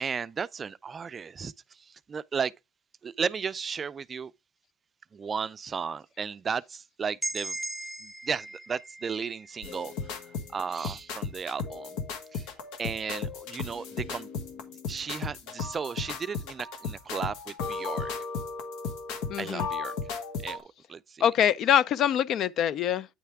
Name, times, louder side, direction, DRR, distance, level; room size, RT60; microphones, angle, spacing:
voice 1, 0.0-2.5 3.0-4.3 5.1-7.6 8.0-9.9 10.5-12.0 12.3-12.5 12.8-14.3 14.9-18.1 19.4-20.0 20.4-20.6 20.9-21.2, right 6 dB, 35° right, 0.4 m, -34 dB
sound 1, 7.2-11.0, right 2 dB, 10° right, 0.8 m, -39 dB
sound 2, 9.6-20.6, left 5 dB, 80° left, 1.3 m, -35 dB
voice 2, 19.3-19.7 21.2-23.1, left 9 dB, 60° left, 0.4 m, -24 dB
9.2 x 3.3 x 4.6 m
supercardioid pair, 100°, 0 cm